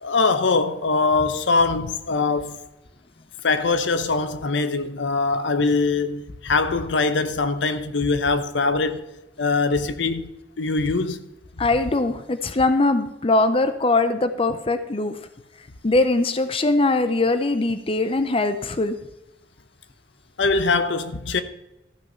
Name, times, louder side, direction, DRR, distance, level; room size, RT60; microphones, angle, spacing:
voice 1, 0.0-2.6 3.4-9.0 9.4-11.2 20.4-21.4, left 3 dB, 80° left, 0.9 m, -22 dB
voice 2, 11.6-15.2 15.8-18.9, left 2 dB, 30° left, 0.6 m, -21 dB
13.5 x 6.2 x 5.6 m
head